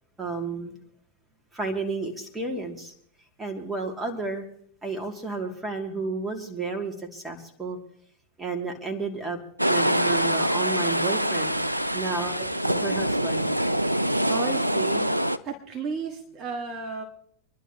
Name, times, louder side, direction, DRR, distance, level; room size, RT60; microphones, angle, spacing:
voice 1, 0.2-0.8 1.5-2.9 3.4-4.4 4.8-7.8 8.4-9.4 9.7-11.6 11.9-12.3 12.8-13.5, right 3 dB, 10° right, 2 dB, 2.7 m, -31 dB
sound 1, 9.6-15.4, equal, 85° right, 0.6 m, -25 dB
voice 2, 12.2-12.8 14.3-15.2 15.4-17.0, right 4 dB, 30° right, 1 dB, 1.8 m, -34 dB
26.5 x 11.5 x 3.0 m, 0.65 s
figure-of-eight pair, 90°, 0 cm